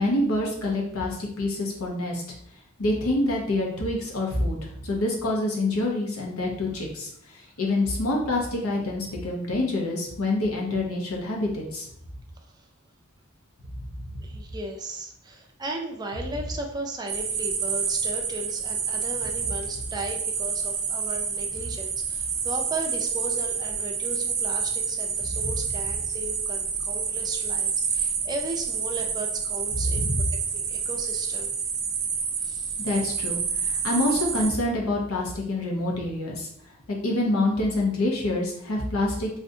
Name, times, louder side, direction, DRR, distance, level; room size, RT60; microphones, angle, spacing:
voice 1, 0.0-2.2 2.8-7.1 7.6-11.9 29.9-30.2 32.8-36.5 36.9-39.4, left 2 dB, 80° left, -1 dB, 0.8 m, -26 dB
voice 2, 14.2-30.1 30.5-31.5 32.4-32.8, right 2 dB, 20° right, 2 dB, 0.4 m, -36 dB
sound 1, 17.1-34.5, right 6 dB, 85° right, 0.6 m, -29 dB
3.6 x 2.5 x 2.7 m, 0.70 s
head